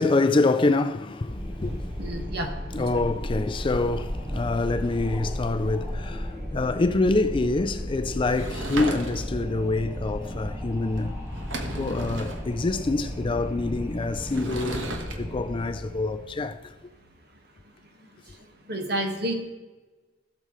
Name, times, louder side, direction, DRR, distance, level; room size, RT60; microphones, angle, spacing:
voice 1, 0.0-1.9 2.7-11.2 11.7-16.7, left 3 dB, 25° left, 0.4 m, -26 dB
Wind, 1.3-16.6, equal, 15° right, 1.8 m, -34 dB
voice 2, 2.0-2.5 2.7-3.1 18.7-19.3, right 1 dB, 55° right, 1.5 m, -30 dB
Sliding door / Wood, 8.2-9.5 11.0-11.1 11.3-12.4 14.2-15.2, right 2 dB, 80° right, 1.2 m, -35 dB
16.5 x 6.9 x 3.1 m
head